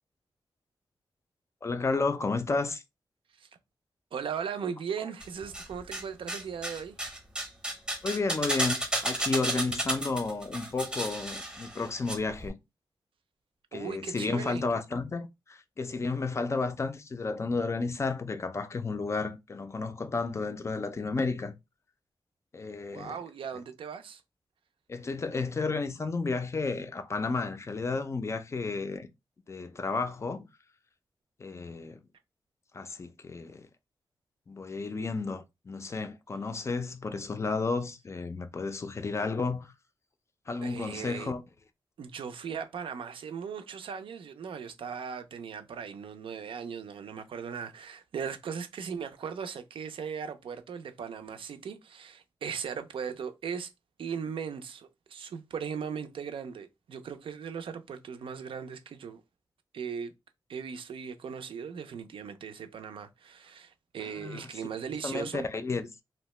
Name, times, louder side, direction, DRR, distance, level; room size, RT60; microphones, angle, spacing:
voice 1, 1.6-2.8 8.0-12.6 13.7-21.5 22.5-23.2 24.9-29.1 29.5-30.5 31.4-32.0 32.7-33.7 34.5-39.7 40.5-41.4 64.2-64.5 65.0-66.0, left 3 dB, 30° left, 0.3 m, -32 dB
voice 2, 4.1-7.0 13.7-14.6 22.9-24.2 40.6-41.3 42.0-53.7 54.0-59.2 59.7-60.1 60.5-65.5, right 7 dB, 80° right, 0.4 m, -38 dB
sound 1, 5.2-6.0 6.3-12.2 12.4-12.5, right 1 dB, 10° right, 0.7 m, -32 dB
2.7 x 2.1 x 3.0 m
wide cardioid pair, 145°, 9 cm